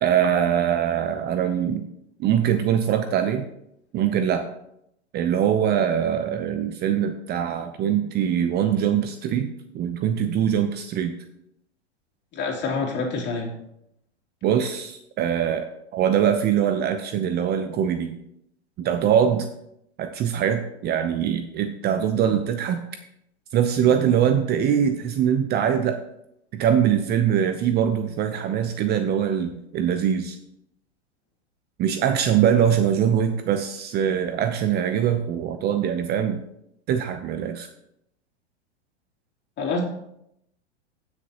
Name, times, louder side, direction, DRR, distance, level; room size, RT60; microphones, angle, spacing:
voice 1, 0.0-1.9 2.2-3.5 3.9-4.5 5.1-11.1 14.4-18.2 18.8-19.5 20.0-22.8 23.5-26.0 26.5-30.4 31.8-36.4 36.9-37.7, right 9 dB, 30° right, 8 dB, 0.7 m, -23 dB
voice 2, 12.3-13.5 39.6-39.8, left 4 dB, 30° left, -2 dB, 3.2 m, -27 dB
16.0 x 6.6 x 3.0 m, 0.78 s
hypercardioid pair, 110°, 33 cm